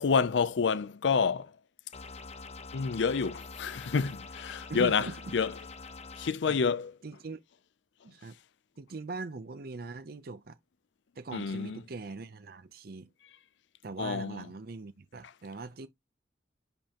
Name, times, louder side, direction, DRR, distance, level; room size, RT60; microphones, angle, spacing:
voice 1, 0.0-1.5 2.7-5.5 6.2-6.9 11.3-11.8 14.0-14.4, left 5 dB, 80° left, 0.5 m, -28 dB
sound 1, 1.9-6.3, left 4 dB, 35° left, 0.9 m, -45 dB
voice 2, 4.7-5.2 6.5-6.6 7.0-7.4 8.0-8.3 8.8-10.6 11.2-13.1 13.8-15.9, right 3 dB, 55° right, 0.6 m, -41 dB
10.5 x 5.3 x 2.9 m
head